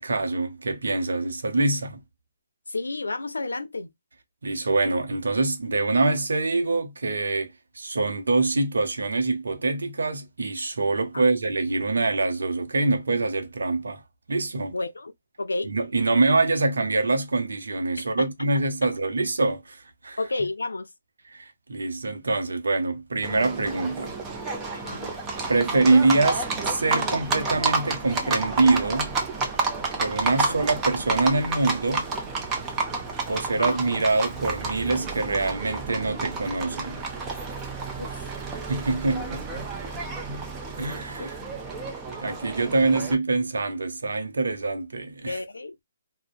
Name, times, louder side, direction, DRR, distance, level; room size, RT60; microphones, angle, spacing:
voice 1, 0.0-2.0 4.4-14.0 14.3-14.7 15.7-20.2 21.3-24.1 25.5-29.1 30.0-32.0 33.3-37.0 38.7-39.6 40.3-40.4 40.8-41.3 42.2-45.4, right 3 dB, 80° right, 0.6 m, -25 dB
voice 2, 2.7-3.9 11.1-11.3 14.7-15.1 15.4-15.7 18.2-18.3 18.8-18.9 20.2-20.9 24.7-25.2 30.2-30.7 33.3-33.8 38.0-38.2 41.2-41.3 45.3-45.8, left 2 dB, 85° left, 0.4 m, -31 dB
Livestock farm animals working animals, 23.2-43.1, right 3 dB, 20° right, 0.6 m, -30 dB
2.5 x 2.1 x 2.3 m
figure-of-eight pair, 140°, 0 cm